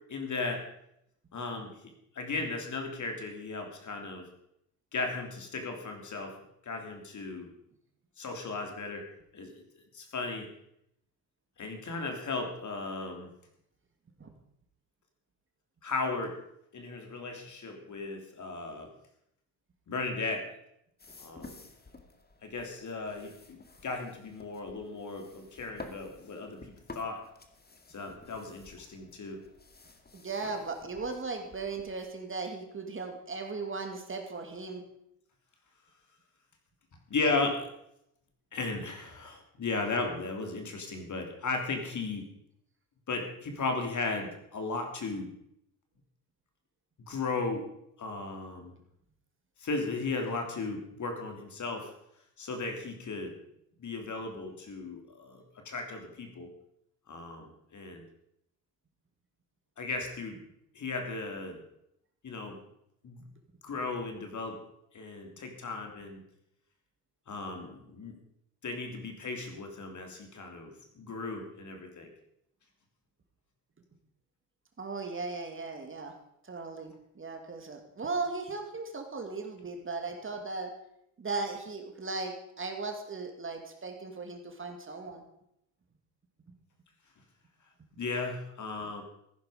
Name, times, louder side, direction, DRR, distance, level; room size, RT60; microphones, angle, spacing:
voice 1, 0.1-0.6 1.3-1.7 2.1-4.3 4.9-6.4 6.6-7.5 8.2-9.1 9.3-9.6 9.9-10.5 11.6-13.3 15.8-16.4 16.7-18.9 19.9-20.5 21.2-21.6 22.4-26.7 26.9-27.2 27.9-29.4 30.4-30.5 37.1-37.7 38.5-42.3 43.1-45.3 47.1-47.6 48.0-48.7 49.6-51.9 52.4-53.3 53.8-56.5 57.1-58.0 59.8-60.4 60.7-61.6 62.2-62.6 63.0-63.2 63.6-64.6 64.9-66.2 67.3-68.2 68.6-72.1 88.0-89.0, left 3 dB, 40° left, 4 dB, 3.3 m, -36 dB
sound 1, 21.0-32.1, left 3 dB, 20° left, 2.1 m, -52 dB
voice 2, 30.1-34.8 74.8-76.1 76.4-80.7 81.2-85.2, right 3 dB, 25° right, 4 dB, 2.5 m, -37 dB
15.0 x 10.5 x 5.1 m, 0.77 s
hypercardioid pair, 70°, 46 cm